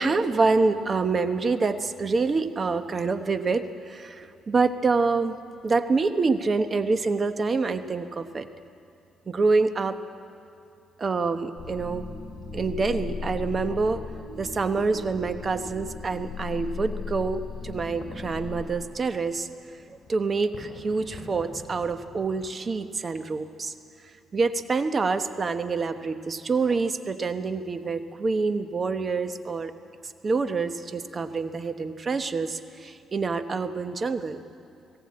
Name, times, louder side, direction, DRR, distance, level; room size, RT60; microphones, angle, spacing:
voice 1, 0.0-5.4 5.6-8.5 9.3-10.0 11.0-12.1 12.5-14.0 14.4-19.5 19.9-23.7 24.3-29.7 30.0-34.4, right 4 dB, 35° right, 10 dB, 1.0 m, -26 dB
sound 1, 11.6-18.7, left 4 dB, 20° left, 6.8 m, -37 dB
sound 2, 17.5-22.5, left 3 dB, 40° left, 3.3 m, -47 dB
19.5 x 17.5 x 8.7 m, 2.5 s
cardioid pair, 90°, 0 cm